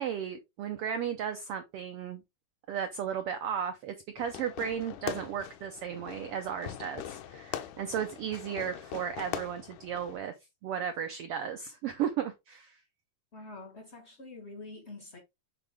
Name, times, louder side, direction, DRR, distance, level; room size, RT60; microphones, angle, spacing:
voice 1, 0.0-2.2 2.7-10.4 10.6-12.8, right 8 dB, 85° right, 1.3 m, -35 dB
Fireworks, 4.2-10.2, left 11 dB, 85° left, 2.2 m, -41 dB
voice 2, 13.3-15.2, left 2 dB, 70° left, 0.6 m, -46 dB
8.1 x 3.6 x 3.3 m
omnidirectional pair, 3.5 m